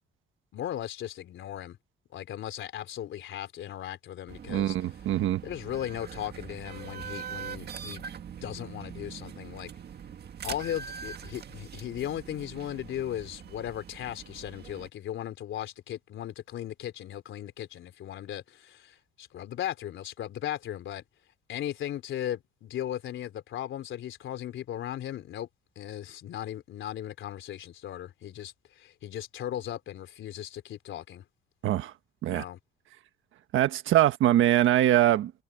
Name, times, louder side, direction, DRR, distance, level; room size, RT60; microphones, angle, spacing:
voice 1, 0.5-1.8 2.1-4.8 5.4-8.0 8.4-9.7 10.4-21.0 21.5-25.5 25.8-31.2 32.3-32.6, left 11 dB, 75° left, 3.7 m, -37 dB
sound 1, 4.3-14.9, right 7 dB, 55° right, 1.9 m, -43 dB
voice 2, 4.5-5.4 31.6-31.9 32.2-32.4 33.5-35.3, right 13 dB, 80° right, 1.4 m, -23 dB
cardioid pair, 90°, 20 cm